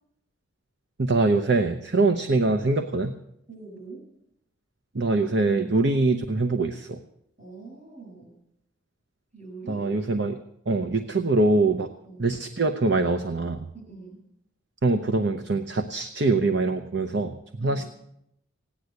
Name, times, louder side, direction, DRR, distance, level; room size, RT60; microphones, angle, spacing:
voice 1, 1.0-3.1 4.9-7.0 9.7-10.4 10.7-11.9 12.2-13.6 14.8-17.9, right 2 dB, 60° right, 7 dB, 0.8 m, -23 dB
voice 2, 3.5-4.1 7.4-8.4 9.3-9.9 12.0-12.3 13.7-14.2 17.6-17.9, right 3 dB, 40° right, 1 dB, 7.3 m, -43 dB
16.5 x 10.0 x 8.0 m, 0.80 s
head